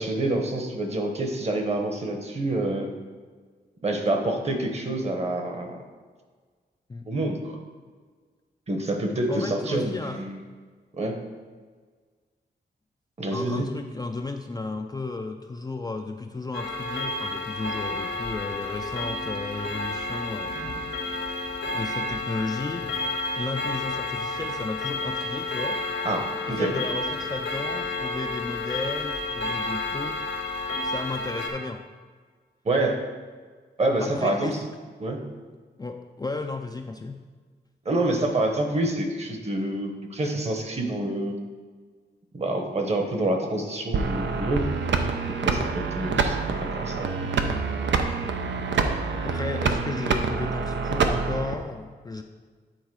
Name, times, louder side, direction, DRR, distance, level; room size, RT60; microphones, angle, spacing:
voice 1, 0.0-2.9 3.8-5.8 7.1-7.6 8.7-10.4 10.9-11.2 13.2-13.7 26.0-26.7 32.6-33.0 33.8-34.5 35.0-35.2 37.8-41.4 42.3-44.7 45.4-47.1, right 1 dB, 35° right, 4 dB, 1.0 m, -27 dB
voice 2, 9.3-10.2 13.3-20.5 21.7-22.9 23.4-25.8 26.4-30.2 30.8-31.8 34.0-34.6 35.8-37.2 46.1-46.2 49.2-52.2, left 3 dB, 20° left, 4 dB, 0.4 m, -34 dB
Clock, 16.5-31.5, left 2 dB, 90° left, 1.4 m, -31 dB
sound 1, 43.9-51.5, right 5 dB, 90° right, 0.6 m, -26 dB
9.3 x 4.0 x 4.7 m, 1.5 s
wide cardioid pair, 120°, 18 cm